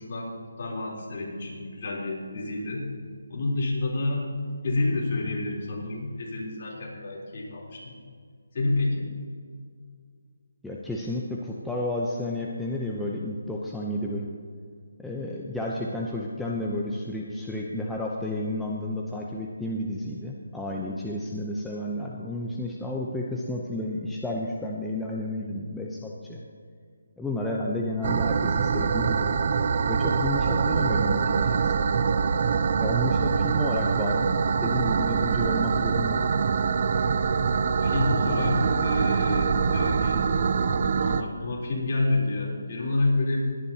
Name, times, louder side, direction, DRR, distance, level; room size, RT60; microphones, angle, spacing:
voice 1, 0.0-2.9 3.3-4.3 4.6-8.0 8.5-9.1 37.8-40.2 41.0-43.5, left 2 dB, 40° left, -3 dB, 3.5 m, -29 dB
voice 2, 10.6-14.3 15.0-26.4 27.2-29.4 29.9-32.0 32.8-34.3 34.6-36.3 39.6-39.7, left 1 dB, ahead, -4 dB, 0.7 m, -31 dB
sound 1, 28.0-41.2, right 5 dB, 40° right, 0.5 m, -24 dB
20.5 x 10.0 x 2.9 m, 2.1 s
figure-of-eight pair, 165°, 0 cm